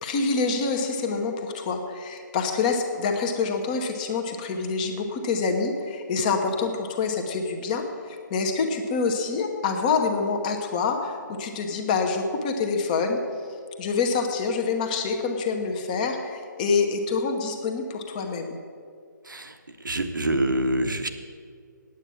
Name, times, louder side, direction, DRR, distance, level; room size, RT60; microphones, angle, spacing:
voice 1, 0.0-13.2 13.8-18.6, left 4 dB, 25° left, 4 dB, 1.1 m, -26 dB
voice 2, 19.2-21.1, right 1 dB, 75° right, 7 dB, 1.3 m, -26 dB
9.1 x 8.9 x 8.7 m, 2.1 s
figure-of-eight pair, 145°, 11 cm